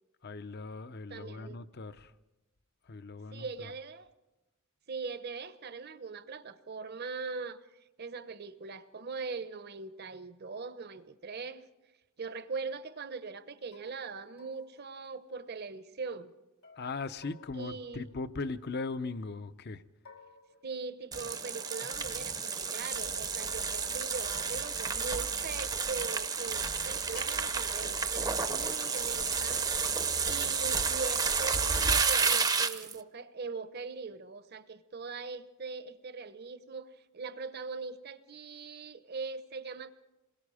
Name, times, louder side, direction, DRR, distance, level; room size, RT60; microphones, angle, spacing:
voice 1, 0.2-2.1 2.9-3.7 16.8-19.8, left 3 dB, 50° left, 0.7 m, -39 dB
voice 2, 1.1-1.6 3.3-4.1 4.9-7.6 8.0-11.7 12.2-16.3 17.5-18.1 20.6-29.6 30.3-39.9, right 4 dB, 50° right, 0.9 m, -41 dB
sound 1, 13.7-13.9 14.4-15.7 16.6-18.8 20.0-21.5 23.0-24.2 24.9-25.2 27.1-27.5, left 5 dB, 90° left, 3.3 m, -58 dB
sound 2, 21.1-33.0, right 5 dB, 20° right, 0.7 m, -31 dB
27.5 x 21.5 x 4.9 m
head